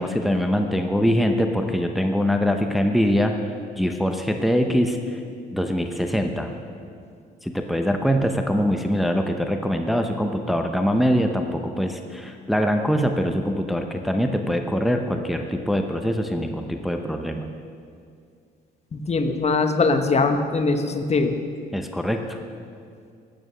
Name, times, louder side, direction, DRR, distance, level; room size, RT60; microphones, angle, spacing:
voice 1, 0.0-3.3 3.8-5.2 5.5-6.5 7.4-17.5 21.7-22.4, equal, ahead, 4 dB, 0.8 m, -23 dB
voice 2, 18.9-21.4, left 3 dB, 35° left, 7 dB, 1.1 m, -21 dB
14.0 x 8.8 x 6.4 m, 2.3 s
cardioid pair, 95°, 18 cm